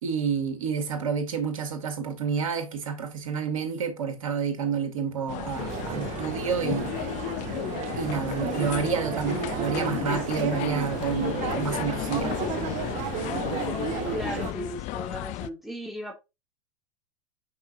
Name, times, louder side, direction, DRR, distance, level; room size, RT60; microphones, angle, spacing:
voice 1, 0.0-6.9 8.0-12.3, right 6 dB, 80° right, 2.3 m, -29 dB
sound 1, 5.3-15.5, left 17 dB, 45° left, 0.5 m, -34 dB
sound 2, 5.5-14.5, right 7 dB, 45° right, 1.7 m, -33 dB
voice 2, 14.1-16.1, equal, ahead, 2.6 m, -36 dB
6.3 x 6.1 x 2.8 m
hypercardioid pair, 105°, 18 cm